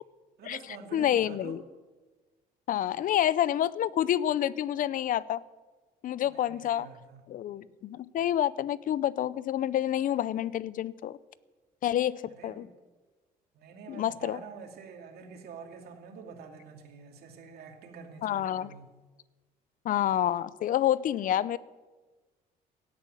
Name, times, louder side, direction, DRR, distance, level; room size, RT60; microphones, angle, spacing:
voice 1, 0.4-1.6 6.2-7.2 12.3-12.7 13.5-19.0, right 5 dB, 70° right, 3 dB, 2.6 m, -47 dB
voice 2, 0.9-1.6 2.7-5.4 6.0-6.9 7.3-11.2 11.8-12.7 13.9-14.4 18.2-18.7 19.8-21.6, left 11 dB, 55° left, 19 dB, 0.6 m, -28 dB
17.0 x 8.3 x 7.7 m, 1.3 s
cardioid pair, 110°, 17 cm